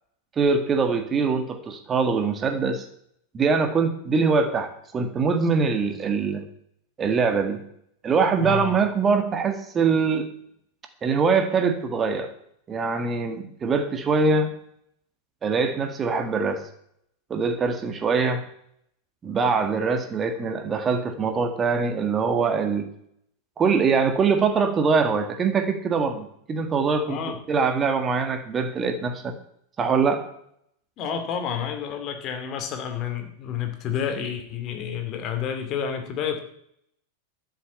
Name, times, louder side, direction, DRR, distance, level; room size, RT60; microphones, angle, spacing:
voice 1, 0.4-2.9 3.3-6.4 7.0-7.6 8.0-10.3 11.0-12.3 12.7-14.5 15.4-16.6 17.3-18.4 19.2-22.9 23.6-27.2 27.5-29.3 29.8-30.2, right 5 dB, 20° right, 7 dB, 1.7 m, -23 dB
voice 2, 8.4-8.8 27.1-27.3 31.0-36.4, left 8 dB, 35° left, 6 dB, 2.5 m, -30 dB
13.0 x 6.8 x 8.6 m, 0.70 s
figure-of-eight pair, 90°, 0 cm